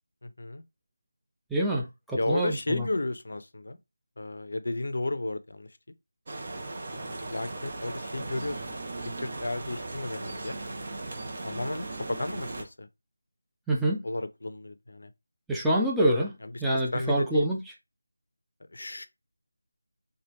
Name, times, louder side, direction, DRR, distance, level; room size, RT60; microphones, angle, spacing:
voice 1, 0.2-0.6 2.1-3.8 4.2-5.7 6.9-8.6 9.2-10.6 11.4-12.9 14.0-15.1 16.4-17.5 18.7-19.0, left 2 dB, 65° left, 0.5 m, -33 dB
voice 2, 1.5-2.9 13.7-14.0 15.5-16.3 16.6-17.6, right 1 dB, ahead, 0.5 m, -26 dB
sound 1, 6.3-12.6, right 2 dB, 40° right, 0.7 m, -37 dB
3.2 x 2.2 x 3.0 m
figure-of-eight pair, 165°, 0 cm